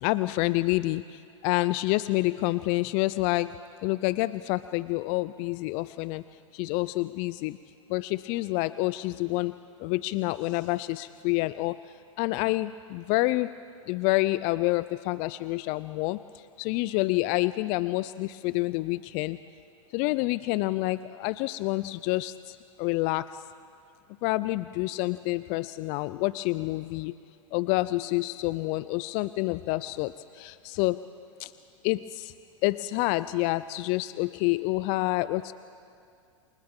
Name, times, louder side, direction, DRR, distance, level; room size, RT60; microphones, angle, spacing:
voice 1, 0.0-6.2 6.5-7.6 7.9-11.8 12.2-13.6 13.9-19.4 19.9-23.3 24.2-27.2 27.5-31.0 31.4-31.5 31.8-32.3 32.6-35.5, left 20 dB, 45° left, 16 dB, 0.4 m, -28 dB
29.0 x 24.5 x 3.7 m, 2.4 s
hypercardioid pair, 105°, 17 cm